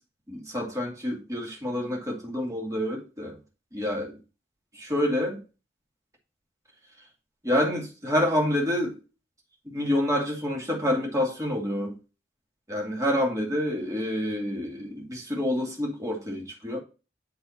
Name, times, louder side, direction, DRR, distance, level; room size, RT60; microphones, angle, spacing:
voice 1, 0.3-3.4 3.7-4.2 4.7-5.4 7.4-9.0 9.7-12.0 12.7-16.8, left 1 dB, 20° right, 2.1 m, -28 dB
9.5 x 3.4 x 4.1 m
head